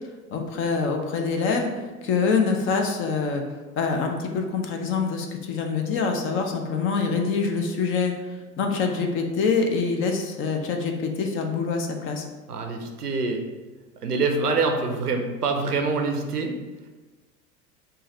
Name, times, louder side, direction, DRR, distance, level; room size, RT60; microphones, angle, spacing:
voice 1, 0.3-3.4 3.8-8.1 8.6-12.2, left 5 dB, 30° left, 3 dB, 0.5 m, -25 dB
voice 2, 12.5-13.4 14.0-16.6, right 3 dB, 90° right, 4 dB, 0.6 m, -25 dB
3.7 x 2.7 x 4.0 m, 1.2 s
figure-of-eight pair, 80°, 45 cm